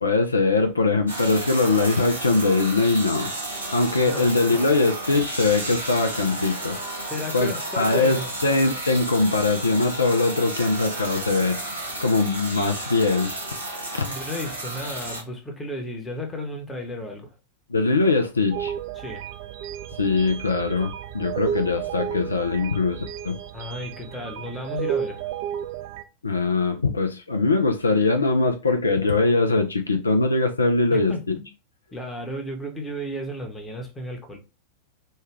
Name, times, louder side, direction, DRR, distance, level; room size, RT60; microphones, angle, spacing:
voice 1, 0.0-3.3 3.7-6.8 7.3-11.6 12.0-13.3 13.9-14.0 17.7-18.7 20.0-23.4 26.2-31.4, left 3 dB, 75° left, 0.4 m, -22 dB
sound 1, 1.1-15.2, right 1 dB, 85° right, 1.0 m, -33 dB
voice 2, 4.0-4.8 7.0-8.3 14.0-17.3 19.0-19.3 23.5-25.3 30.9-31.5 31.9-34.4, left 1 dB, 15° left, 0.9 m, -34 dB
sound 2, 18.5-26.0, right 9 dB, 50° right, 0.3 m, -32 dB
3.2 x 2.3 x 3.2 m
figure-of-eight pair, 90°, 0 cm